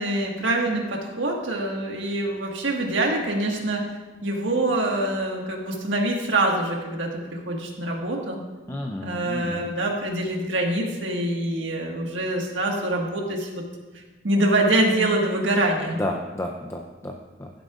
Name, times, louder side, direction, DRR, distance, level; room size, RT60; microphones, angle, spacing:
voice 1, 0.0-3.8 4.2-8.4 9.0-13.6 14.2-16.0, right 1 dB, 80° right, 0 dB, 1.6 m, -25 dB
voice 2, 8.7-9.7 16.0-17.5, left 1 dB, 15° left, 1 dB, 0.5 m, -32 dB
15.5 x 7.6 x 2.4 m, 1.3 s
head